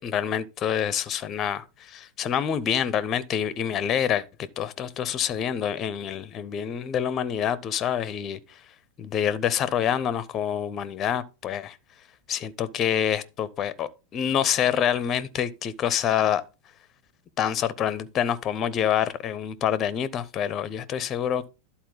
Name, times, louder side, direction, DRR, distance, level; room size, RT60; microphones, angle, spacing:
voice 1, 0.0-4.2 4.6-8.6 9.0-11.8 12.3-16.4 17.4-21.5, left 9 dB, 30° left, 0.5 m, -27 dB
11.5 x 4.2 x 3.8 m
figure-of-eight pair, 90°, 0 cm